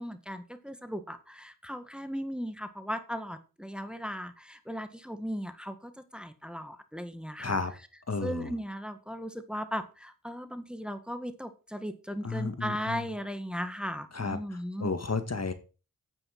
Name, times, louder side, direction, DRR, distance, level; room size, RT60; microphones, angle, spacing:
voice 1, 0.0-7.6 8.2-14.9, equal, 5° right, 10 dB, 1.7 m, -37 dB
voice 2, 7.4-7.7 8.1-8.5 12.2-13.1 14.1-15.5, left 4 dB, 45° left, 9 dB, 2.0 m, -32 dB
9.0 x 9.0 x 6.0 m, 0.33 s
cardioid pair, 45°, 34 cm